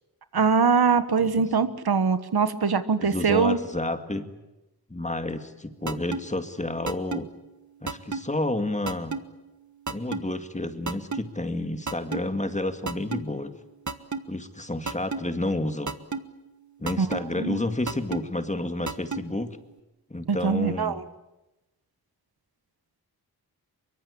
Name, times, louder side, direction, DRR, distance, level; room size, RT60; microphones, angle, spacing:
voice 1, 0.3-3.6 17.0-17.1 17.4-17.6 20.3-21.0, right 5 dB, 75° right, 12 dB, 1.4 m, -22 dB
voice 2, 3.0-4.3 4.9-7.3 7.8-9.2 9.9-13.5 14.3-16.0 16.8-19.6 20.1-21.0, left 1 dB, 20° left, 8 dB, 2.1 m, -30 dB
sound 1, 5.9-6.2 6.9-7.2 7.9-8.2 8.9-9.2 9.9-10.2 10.9-11.2 11.9-12.2 12.9-13.2 13.9-14.2 14.9-15.2 15.9-16.2 16.9-17.2 17.9-18.2 18.9-19.2, right 4 dB, 50° right, 1.5 m, -30 dB
24.0 x 23.5 x 8.5 m, 1.0 s
wide cardioid pair, 90°, 38 cm